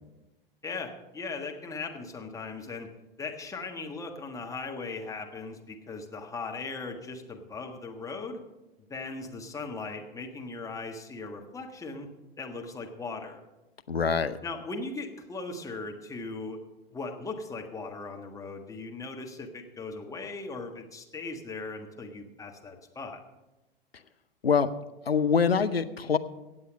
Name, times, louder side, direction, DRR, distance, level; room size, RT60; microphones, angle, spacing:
voice 1, 0.6-2.9 3.2-8.4 8.9-12.1 12.4-13.4 14.4-16.6 16.9-23.2, left 3 dB, 10° left, 2 dB, 1.5 m, -38 dB
voice 2, 13.9-14.4 24.4-24.7 25.1-26.2, left 6 dB, 90° left, 10 dB, 0.6 m, -24 dB
17.0 x 7.9 x 5.3 m, 1.0 s
figure-of-eight pair, 95°, 29 cm